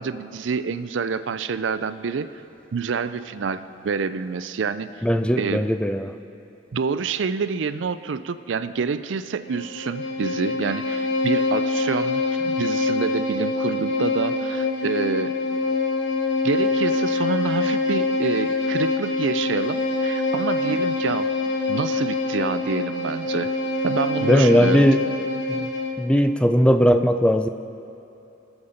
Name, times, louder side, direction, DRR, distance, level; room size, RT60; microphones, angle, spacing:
voice 1, 0.0-2.3 2.7-4.9 5.4-5.6 6.7-15.3 16.4-21.3 21.7-23.5 23.8-24.9, right 5 dB, 90° right, 13 dB, 0.5 m, -27 dB
voice 2, 5.0-6.1 24.2-25.0 25.5-25.6 26.0-27.5, equal, 5° left, 9 dB, 0.4 m, -18 dB
Bowed string instrument, 9.5-26.1, left 3 dB, 85° left, 1.1 m, -25 dB
21.5 x 7.2 x 5.1 m, 2.8 s
head